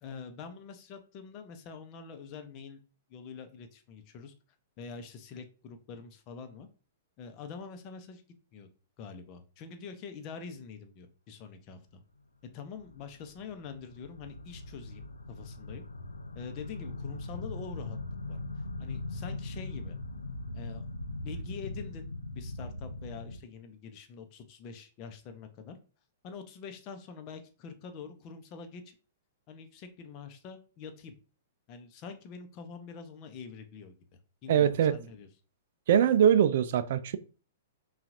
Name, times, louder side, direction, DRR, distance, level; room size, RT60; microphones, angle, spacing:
voice 1, 0.0-2.8 3.1-4.3 4.8-6.7 7.2-8.2 8.5-8.7 9.0-12.0 12.5-15.8 16.3-18.0 18.3-18.4 18.8-20.0 20.5-20.9 21.2-22.1 22.3-25.8 26.2-28.9 29.5-31.1 31.7-33.9 34.4-35.3, left 5 dB, 40° left, 0.8 m, -45 dB
sound 1, 12.6-23.4, left 2 dB, 90° left, 0.5 m, -40 dB
voice 2, 34.5-35.0 35.9-37.2, right 9 dB, 60° right, 0.4 m, -23 dB
5.6 x 2.5 x 2.6 m
hypercardioid pair, 110°, 0 cm